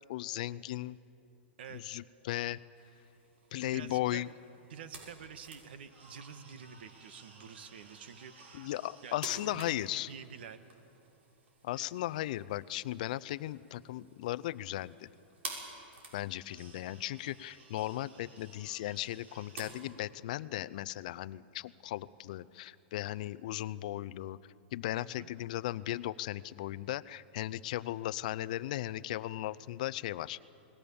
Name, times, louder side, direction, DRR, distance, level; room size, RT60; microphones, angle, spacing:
voice 1, 0.1-1.0 1.7-2.6 3.5-4.3 8.5-10.1 11.6-15.1 16.1-24.4 24.7-30.4, left 15 dB, 40° left, 16 dB, 0.5 m, -37 dB
sound 1, 2.8-19.6, right 3 dB, 85° right, 6.3 m, -52 dB
voice 2, 3.7-4.2 4.7-8.7 9.0-10.6 11.7-11.9 24.9-25.3, right 7 dB, 60° right, 10 dB, 1.5 m, -48 dB
28.5 x 20.0 x 7.0 m, 2.7 s
supercardioid pair, 180°, 6 cm